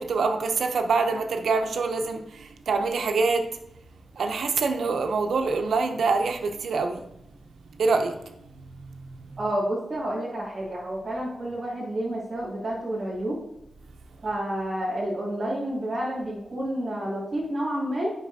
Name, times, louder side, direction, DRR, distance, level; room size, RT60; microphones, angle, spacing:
voice 1, 0.0-3.5 4.1-7.0 7.8-8.3 8.8-9.4, right 4 dB, 80° right, 0.6 m, -25 dB
voice 2, 9.4-13.4 14.2-18.1, right 1 dB, 35° right, 2.4 m, -29 dB
8.3 x 5.3 x 2.7 m
wide cardioid pair, 120°, 0 cm